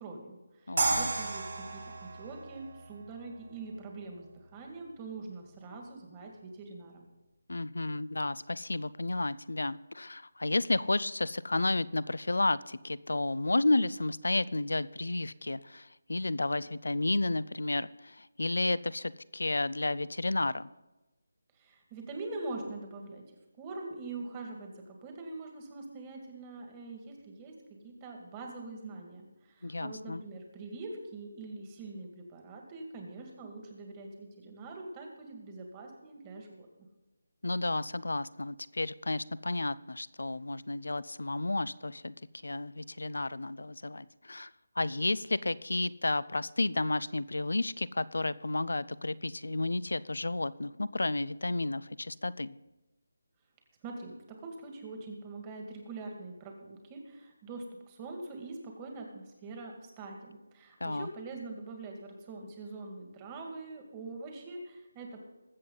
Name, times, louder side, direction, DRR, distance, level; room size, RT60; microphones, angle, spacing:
voice 1, 0.0-1.4 1.7-7.1 21.6-23.2 23.6-27.5 27.8-36.7 53.8-65.2, right 3 dB, 20° right, 2 dB, 2.0 m, -44 dB
voice 2, 0.7-1.1 7.5-20.7 29.6-30.2 37.4-42.1 42.4-44.5 44.8-52.5 60.8-61.1, left 2 dB, 85° left, 19 dB, 0.5 m, -32 dB
sound 1, 0.8-3.8, right 3 dB, 65° right, 5.4 m, -33 dB
20.5 x 7.8 x 3.9 m, 1.1 s
figure-of-eight pair, 165°, 0 cm